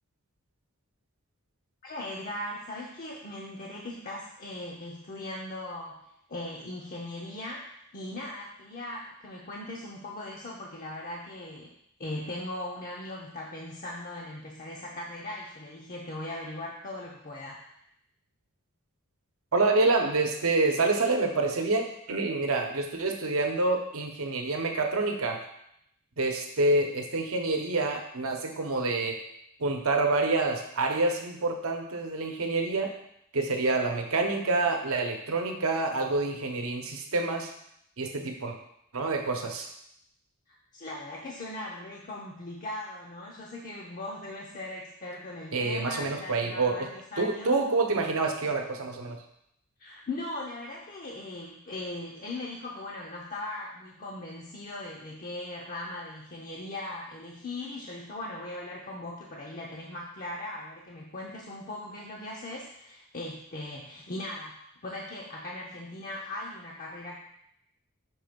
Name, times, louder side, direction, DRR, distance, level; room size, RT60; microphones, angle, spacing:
voice 1, 1.8-6.0 6.3-7.6 7.9-11.7 12.0-17.9 40.5-47.5 49.8-64.6 64.8-67.2, left 1 dB, 40° left, -2 dB, 0.7 m, -39 dB
voice 2, 19.5-25.4 26.2-29.2 29.6-32.9 33.3-37.5 38.0-38.6 38.9-39.7 45.5-46.9 47.2-49.2, right 3 dB, 70° right, 3 dB, 0.9 m, -27 dB
6.2 x 3.2 x 5.2 m, 0.75 s
head